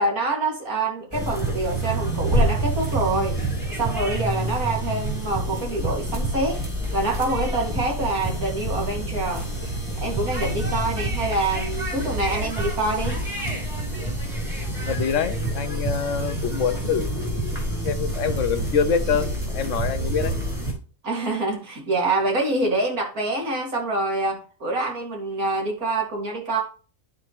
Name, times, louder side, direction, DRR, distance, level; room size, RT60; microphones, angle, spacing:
voice 1, 0.0-3.4 3.8-6.6 6.9-9.5 10.0-13.2 21.0-26.6, right 2 dB, 85° right, -1 dB, 2.7 m, -26 dB
sound 1, 1.1-20.7, right 1 dB, 20° right, 3.3 m, -27 dB
voice 2, 10.4-10.9 14.9-17.6 17.8-20.3, left 6 dB, 65° left, 11 dB, 1.0 m, -26 dB
12.5 x 4.3 x 3.1 m, 0.38 s
omnidirectional pair, 1.5 m